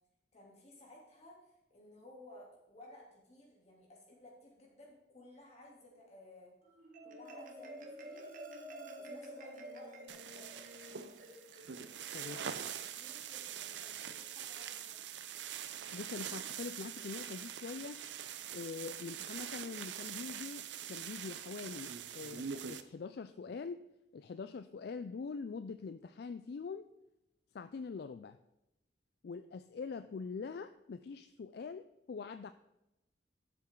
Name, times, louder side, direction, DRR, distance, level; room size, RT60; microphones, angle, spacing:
voice 1, 0.3-6.5 7.0-8.4 9.0-10.6 12.2-12.7 13.0-15.1, left 1 dB, 35° left, -2 dB, 3.0 m, -56 dB
Marimba xylophone, 6.7-13.3, right 1 dB, 50° right, 1.3 m, -50 dB
sound 1, 10.1-22.8, right 8 dB, 85° right, 0.6 m, -44 dB
voice 2, 15.9-18.0 18.5-20.6 20.9-23.8 24.1-26.9 27.5-28.4 29.2-32.5, left 5 dB, 60° left, 11 dB, 0.4 m, -44 dB
12.0 x 7.4 x 3.8 m, 0.92 s
head